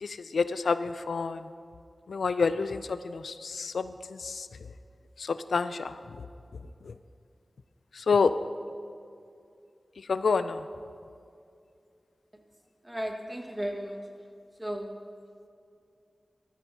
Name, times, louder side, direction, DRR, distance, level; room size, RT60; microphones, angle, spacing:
voice 1, 0.0-1.5 2.1-4.5 5.2-6.0 8.0-8.3 10.1-10.6, left 4 dB, 90° left, 12 dB, 0.3 m, -28 dB
voice 2, 12.8-14.0 14.6-14.9, equal, 15° right, 1 dB, 1.7 m, -34 dB
14.5 x 13.5 x 2.8 m, 2.4 s
cardioid pair, 45°, 0 cm